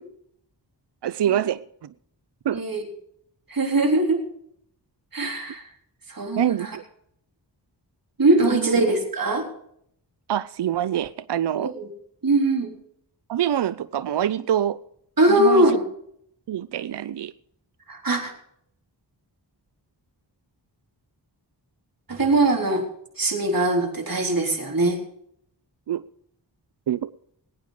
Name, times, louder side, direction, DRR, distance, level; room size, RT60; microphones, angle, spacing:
voice 1, 1.0-1.9 2.4-2.7 6.4-6.8 8.4-8.8 10.3-11.7 13.3-14.8 15.3-15.7 16.5-17.3 25.9-26.1 26.9-27.1, right 11 dB, 65° right, 0.6 m, -25 dB
voice 2, 2.5-2.9 3.5-4.2 5.1-5.6 6.1-6.7 8.2-9.5 11.6-11.9 12.2-12.7 15.2-15.8 17.9-18.3 22.1-22.8 23.2-25.0, right 2 dB, 50° right, 3.7 m, -21 dB
20.5 x 9.2 x 5.0 m
wide cardioid pair, 75°, 44 cm